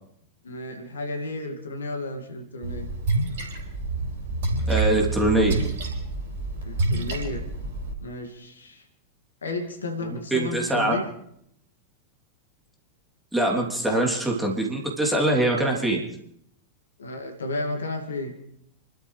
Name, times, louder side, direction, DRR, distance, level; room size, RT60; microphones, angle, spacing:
voice 1, 0.4-2.9 6.6-7.5 8.0-8.8 9.4-11.1 17.0-18.4, left 2 dB, 70° left, 4 dB, 2.3 m, -33 dB
Splash splatter, 2.6-7.9, right 3 dB, 60° right, 4.0 m, -27 dB
voice 2, 4.7-5.6 10.0-10.9 13.3-16.0, right 1 dB, 5° right, -1 dB, 3.2 m, -23 dB
29.0 x 12.5 x 3.4 m, 0.70 s
figure-of-eight pair, 90°, 0 cm